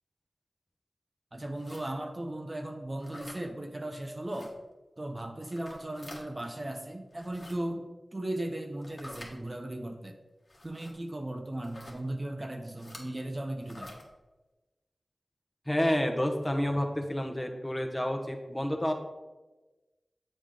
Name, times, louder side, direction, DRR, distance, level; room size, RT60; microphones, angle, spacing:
voice 1, 1.3-4.6 5.0-10.2 10.6-13.9, right 1 dB, 35° right, 5 dB, 0.7 m, -37 dB
sound 1, 1.6-1.9 3.0-3.4 4.3-4.5 5.4-6.2 7.1-7.5 8.8-9.3 10.5-10.9 11.6-12.0 12.8-13.0 13.6-14.0, left 1 dB, 55° left, 1.3 m, -47 dB
voice 2, 15.7-18.9, left 1 dB, 20° left, 3 dB, 1.0 m, -29 dB
7.4 x 5.0 x 3.7 m, 1.1 s
cardioid pair, 45°, 0 cm